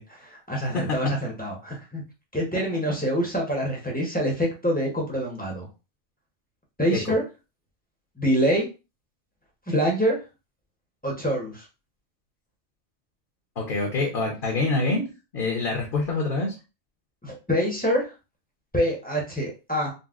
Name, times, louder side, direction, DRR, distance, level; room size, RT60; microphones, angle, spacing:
voice 1, 0.0-2.0 2.3-5.7 6.8-7.2 8.2-8.6 9.7-10.2 11.0-11.7 17.2-18.1 18.7-19.9, equal, 10° left, -1 dB, 0.6 m, -25 dB
voice 2, 13.6-15.0 15.3-16.5, left 3 dB, 50° left, 0 dB, 0.8 m, -25 dB
3.9 x 2.1 x 2.4 m, 0.29 s
omnidirectional pair, 1.3 m